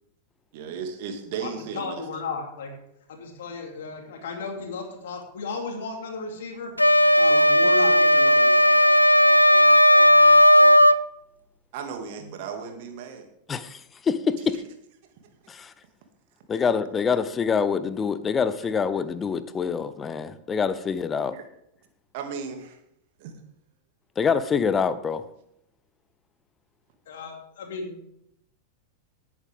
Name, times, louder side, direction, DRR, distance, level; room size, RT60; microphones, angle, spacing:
voice 1, 0.5-2.0 11.7-13.3 21.3-21.4 22.1-22.8 23.2-23.4 27.1-27.2, right 6 dB, 50° right, 5 dB, 2.3 m, -35 dB
voice 2, 1.4-2.8 3.1-6.7 7.2-8.8 27.1-28.0, left 4 dB, 60° left, 2 dB, 2.9 m, -35 dB
sound 1, 6.8-11.0, equal, 90° left, 0.4 m, -15 dB
voice 3, 13.5-14.6 15.5-15.7 16.5-21.4 24.2-25.2, left 6 dB, 20° left, 15 dB, 0.8 m, -25 dB
18.5 x 8.8 x 3.6 m, 0.76 s
figure-of-eight pair, 90°, 0 cm